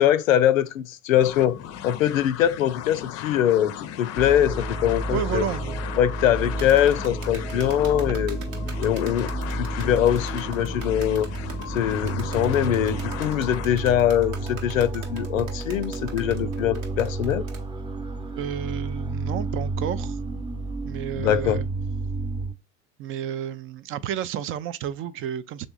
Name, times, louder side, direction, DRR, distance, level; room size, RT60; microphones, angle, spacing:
voice 1, 0.0-1.6 1.8-5.4 6.0-8.4 8.8-11.3 11.7-17.4 21.2-21.6, left 11 dB, 80° left, 0.5 m, -22 dB
sound 1, 1.1-13.7, left 10 dB, 40° left, 0.5 m, -37 dB
sound 2, 4.2-22.5, right 2 dB, 10° right, 0.8 m, -31 dB
voice 2, 5.1-5.8 9.6-9.7 18.3-20.2 20.8-21.7 23.0-25.7, right 10 dB, 35° right, 0.4 m, -31 dB
sound 3, 6.6-17.6, right 5 dB, 80° right, 1.2 m, -43 dB
5.1 x 3.4 x 2.3 m
hypercardioid pair, 70°, 39 cm